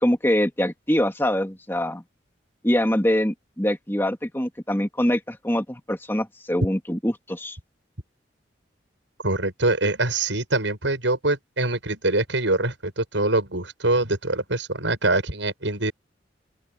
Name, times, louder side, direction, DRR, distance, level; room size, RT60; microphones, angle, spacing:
voice 1, 0.0-2.0 2.6-7.6, equal, 10° left, 2.4 m, -24 dB
voice 2, 9.2-15.9, right 2 dB, 90° right, 7.3 m, -24 dB
open air
head